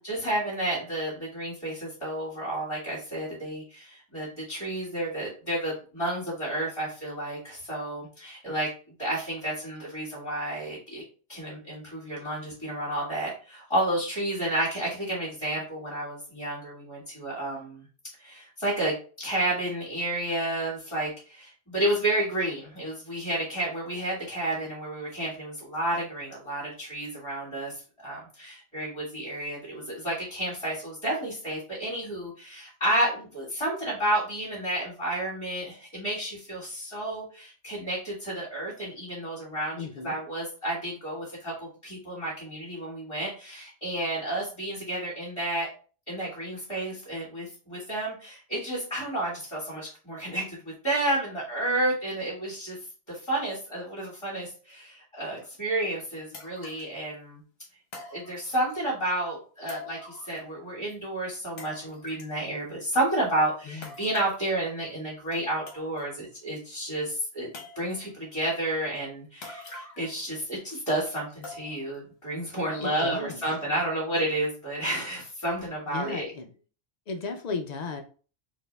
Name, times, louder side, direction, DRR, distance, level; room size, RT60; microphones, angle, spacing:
voice 1, 0.0-8.7 9.0-11.0 11.3-17.8 18.2-27.7 28.0-45.7 46.1-52.8 53.1-57.4 57.9-67.5 67.8-76.3, right 1 dB, 20° left, -9 dB, 1.9 m, -31 dB
voice 2, 39.8-40.2 63.7-64.0 72.8-73.4 75.9-76.5 77.1-78.0, left 4 dB, 70° left, 5 dB, 0.4 m, -35 dB
sound 1, 55.5-55.6 56.3-56.9 57.9-58.8 59.7-60.6 60.9-61.0 61.6-62.4 63.8-64.5 65.3-65.4 65.7-66.2 66.6-66.7 67.5-68.1 69.4-70.2 70.5-70.6 71.4-72.0 72.4-72.5 73.1-73.2, left 3 dB, 55° left, 1.1 m, -44 dB
4.2 x 2.7 x 3.3 m, 0.39 s
omnidirectional pair, 1.3 m